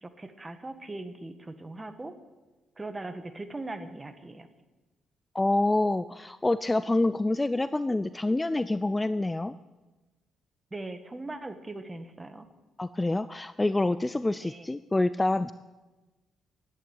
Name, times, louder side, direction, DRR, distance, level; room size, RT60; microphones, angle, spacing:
voice 1, 0.0-2.1 2.8-4.5 10.7-12.5 14.4-14.7, right 2 dB, 20° right, 9 dB, 1.6 m, -40 dB
voice 2, 5.3-9.5 12.8-15.5, left 2 dB, 15° left, 15 dB, 0.4 m, -27 dB
11.5 x 11.0 x 9.2 m, 1.2 s
cardioid pair, 90°, 0 cm